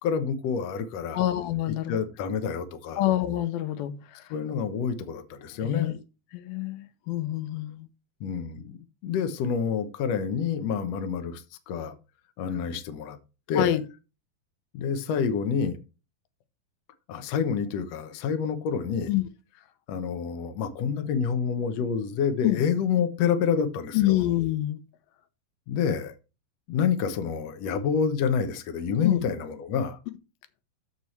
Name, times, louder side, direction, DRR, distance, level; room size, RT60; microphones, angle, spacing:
voice 1, 0.0-1.2 1.7-3.1 4.3-5.9 8.2-11.9 12.4-13.2 13.5-13.8 14.7-15.8 17.1-19.1 19.9-24.2 25.7-26.1 26.7-30.0, left 6 dB, 65° left, 1.7 m, -28 dB
voice 2, 1.1-2.0 3.0-4.0 5.6-6.0 6.3-7.9 13.6-13.8 19.1-19.2 22.4-22.6 24.0-24.8 29.0-29.2, left 14 dB, 85° left, 2.6 m, -26 dB
13.5 x 4.6 x 3.2 m
omnidirectional pair, 4.2 m